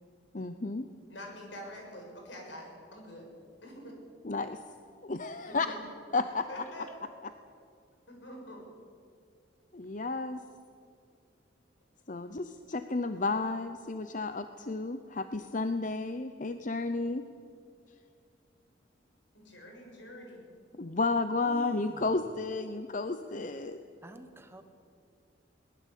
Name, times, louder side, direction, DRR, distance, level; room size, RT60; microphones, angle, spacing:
voice 1, 0.3-0.9 4.2-4.6 5.0-5.7 6.1-6.5 9.7-10.4 12.1-17.2 20.8-23.8, left 3 dB, 45° left, 9 dB, 0.8 m, -32 dB
voice 2, 1.1-3.3 3.6-4.0 5.4-5.8 6.5-6.9 8.1-8.7 12.5-12.6 19.3-20.5, equal, 80° left, 1 dB, 7.0 m, -46 dB
voice 3, 21.4-22.1 24.0-24.6, right 1 dB, 15° right, 8 dB, 1.3 m, -48 dB
22.0 x 19.5 x 8.4 m, 2.4 s
head